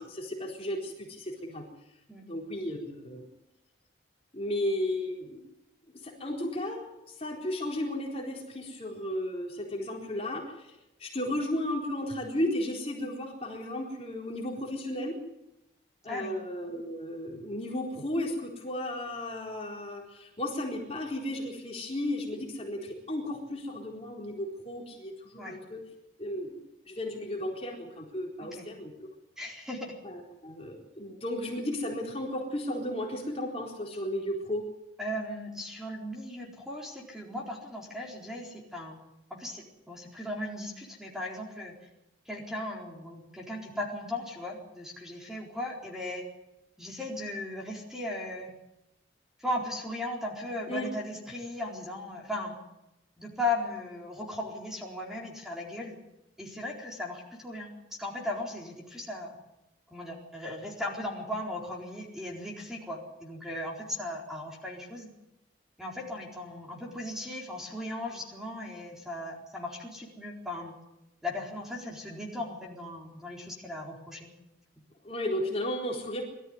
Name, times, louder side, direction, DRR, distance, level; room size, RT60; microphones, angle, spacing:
voice 1, 0.0-1.6 2.3-3.2 4.3-5.4 6.0-10.7 11.0-15.2 16.0-25.8 26.2-26.6 26.9-28.9 30.0-34.6 50.7-50.9 75.0-76.2, left 1 dB, 30° left, -1 dB, 4.1 m, -34 dB
voice 2, 29.4-29.9 35.0-39.0 39.3-41.7 42.3-46.2 46.8-48.5 49.4-52.6 53.2-56.0 56.4-59.4 59.9-65.1 65.8-70.7 71.2-74.3, left 1 dB, 5° right, -1 dB, 4.2 m, -37 dB
23.0 x 14.0 x 9.6 m, 0.90 s
head